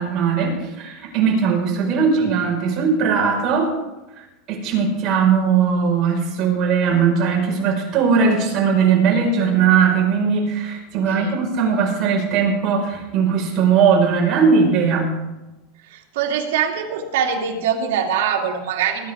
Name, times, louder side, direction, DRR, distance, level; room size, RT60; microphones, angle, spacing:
voice 1, 0.0-3.7 4.2-15.2, right 6 dB, 40° right, -1 dB, 5.2 m, -19 dB
voice 2, 11.1-11.4 15.9-19.1, right 7 dB, 80° right, 0 dB, 2.8 m, -23 dB
21.0 x 11.0 x 3.7 m, 1.0 s
supercardioid pair, 145°, 0 cm